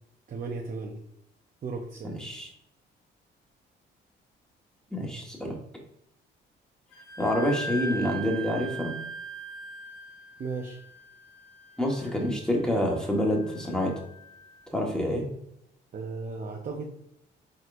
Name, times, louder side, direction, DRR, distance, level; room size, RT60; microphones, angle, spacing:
voice 1, 0.3-1.0 1.6-2.2 10.4-10.8 15.9-17.0, right 4 dB, 45° right, 1 dB, 0.7 m, -35 dB
voice 2, 4.9-5.5 7.2-8.9 11.8-13.9 14.7-15.3, equal, 5° left, 0 dB, 1.3 m, -27 dB
Wind instrument woodwind instrument, 6.9-14.3, right 2 dB, 75° left, 1.3 m, -40 dB
4.2 x 4.0 x 2.5 m, 0.77 s
cardioid pair, 90°, 20 cm